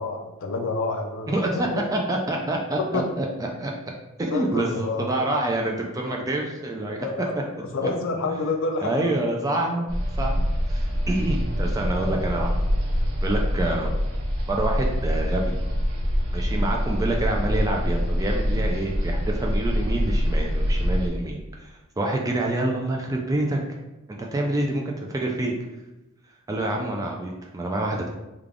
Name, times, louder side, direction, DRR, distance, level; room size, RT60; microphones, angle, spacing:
voice 1, 0.0-1.8 2.8-3.0 4.3-5.1 7.0-9.2, left 3 dB, 60° left, 4 dB, 0.5 m, -28 dB
voice 2, 1.3-3.3 3.6-3.7 4.2-7.0 7.6-7.9 8.3-8.4 8.8-9.9 10.2-10.4 10.7-12.5 13.2-13.9 14.5-15.6 16.3-23.6 24.2-25.5 26.5-28.1, right 2 dB, 15° right, 0 dB, 0.3 m, -27 dB
sound 1, 9.9-21.1, equal, 70° right, 0.8 m, -25 dB
3.4 x 2.3 x 3.6 m, 0.99 s
head